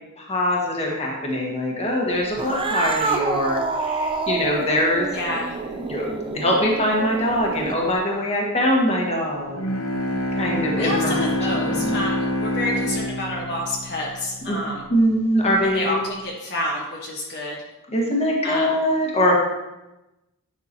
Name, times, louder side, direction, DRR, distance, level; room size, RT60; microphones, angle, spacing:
voice 1, 0.2-5.1 5.7-6.1 6.3-9.6 10.4-11.3 11.6-12.0 14.5-14.6 14.9-16.0 17.9-19.3, equal, 30° left, -2 dB, 1.5 m, -22 dB
Cat, 2.3-7.9, right 4 dB, 25° right, 0.4 m, -28 dB
voice 2, 5.1-5.6 10.7-14.8 15.6-17.6 18.4-18.8, left 1 dB, 50° left, -3 dB, 1.2 m, -28 dB
Bowed string instrument, 9.5-14.6, left 1 dB, 70° left, 1.2 m, -26 dB
9.6 x 6.0 x 2.9 m, 0.99 s
head